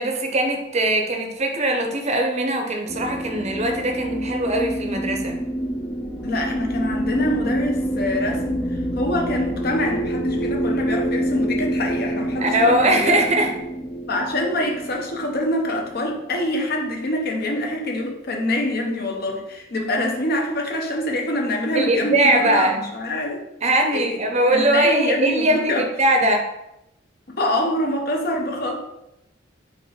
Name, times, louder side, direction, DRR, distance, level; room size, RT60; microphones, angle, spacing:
voice 1, 0.0-5.4 12.4-13.5 21.7-22.9 23.6-26.5, right 1 dB, 35° right, 4 dB, 0.7 m, -21 dB
sound 1, 2.9-17.5, right 1 dB, 15° left, 0.4 m, -27 dB
voice 2, 6.2-8.6 8.9-13.2 14.1-23.4 23.9-24.2 24.5-25.8 27.4-28.8, left 1 dB, 55° left, 1 dB, 0.8 m, -25 dB
4.5 x 2.5 x 4.8 m, 0.87 s
head